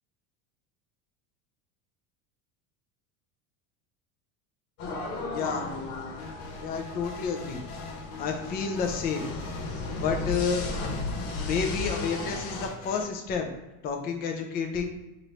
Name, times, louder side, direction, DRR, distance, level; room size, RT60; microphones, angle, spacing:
sound 1, 4.8-12.7, left 3 dB, 65° left, 1.1 m, -35 dB
voice 1, 5.3-5.7 6.6-7.6 8.2-9.3 10.0-10.7 11.3-13.5 13.8-15.0, left 5 dB, 25° left, 4 dB, 0.4 m, -30 dB
sound 2, 6.2-13.0, left 3 dB, 85° left, 1.1 m, -44 dB
3.1 x 2.6 x 4.2 m, 0.99 s
supercardioid pair, 135°, 42 cm